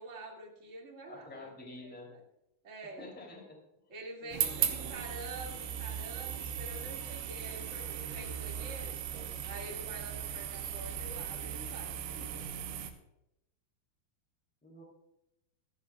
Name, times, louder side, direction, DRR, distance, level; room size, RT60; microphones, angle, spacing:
voice 1, 0.0-1.5 1.8-2.2 2.6-3.0 3.9-8.9 9.4-12.4, right 2 dB, 25° right, -1 dB, 1.9 m, -47 dB
voice 2, 1.0-2.1 2.8-3.6 4.2-4.9 14.6-14.8, left 2 dB, 5° left, 1 dB, 2.3 m, -49 dB
sound 1, 4.3-12.9, right 9 dB, 85° right, 3.0 m, -37 dB
15.0 x 14.0 x 2.4 m, 0.87 s
omnidirectional pair, 4.4 m